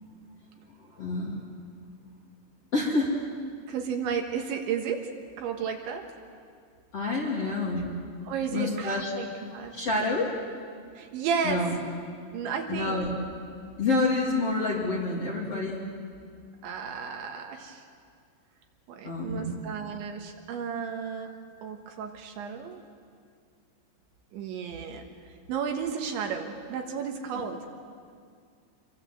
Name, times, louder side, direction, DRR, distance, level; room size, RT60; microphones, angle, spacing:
voice 1, 0.8-1.4 2.7-3.1 6.9-7.9 8.5-9.1 9.7-10.3 11.4-11.7 12.7-13.1 13.8-15.9 19.0-19.6 27.3-27.4, left 3 dB, 35° left, -3 dB, 3.0 m, -28 dB
voice 2, 3.7-5.1 5.4-6.1 8.3-9.8 11.0-11.6 12.3-13.0 16.6-17.8 18.9-21.4 21.6-22.8 24.3-25.1 25.5-27.6, right 6 dB, 70° right, 3 dB, 3.6 m, -33 dB
26.5 x 23.5 x 7.7 m, 2.1 s
omnidirectional pair, 5.8 m